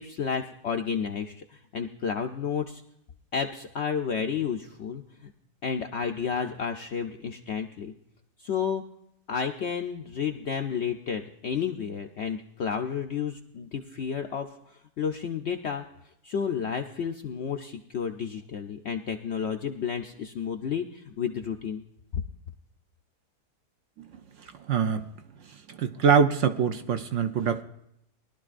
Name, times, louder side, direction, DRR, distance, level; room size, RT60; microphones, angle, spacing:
voice 1, 0.0-2.8 3.3-5.3 5.6-7.9 8.4-8.8 9.3-15.9 16.2-21.8 22.1-22.2, left 6 dB, 65° left, 5 dB, 0.6 m, -31 dB
voice 2, 24.4-25.1 25.4-27.6, right 6 dB, 65° right, 9 dB, 0.8 m, -25 dB
21.5 x 12.0 x 2.5 m, 0.76 s
omnidirectional pair, 1.8 m